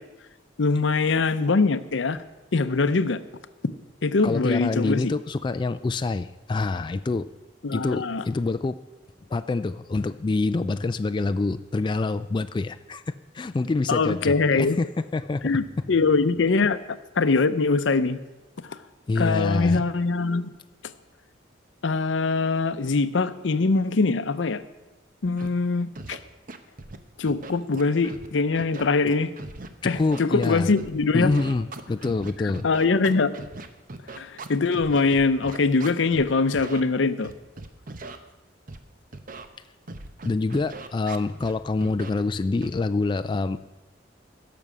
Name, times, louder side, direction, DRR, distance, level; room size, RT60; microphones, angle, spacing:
voice 1, 0.6-2.2 2.5-3.2 4.0-5.1 7.6-8.2 13.9-14.8 15.4-16.8 17.2-18.2 19.2-20.4 21.8-24.6 25.2-26.2 27.2-29.3 29.8-31.3 32.4-33.3 34.1-37.3, left 4 dB, 80° left, 13 dB, 0.6 m, -23 dB
voice 2, 4.2-7.3 7.7-8.8 9.3-15.9 19.1-19.9 29.8-30.7 31.1-32.6 40.2-43.6, left 3 dB, 25° left, 10 dB, 0.3 m, -26 dB
Scratching (performance technique), 25.4-25.5 25.9-26.2 26.5-27.0 27.3-28.3 28.5-30.9 31.2-36.2 36.5-36.8 37.2-38.2 38.7-38.8 39.1-39.5 39.9-41.5 41.8-42.1 42.6-42.8, right 2 dB, 50° right, 0.8 m, -39 dB
16.0 x 6.9 x 6.1 m, 1.1 s
head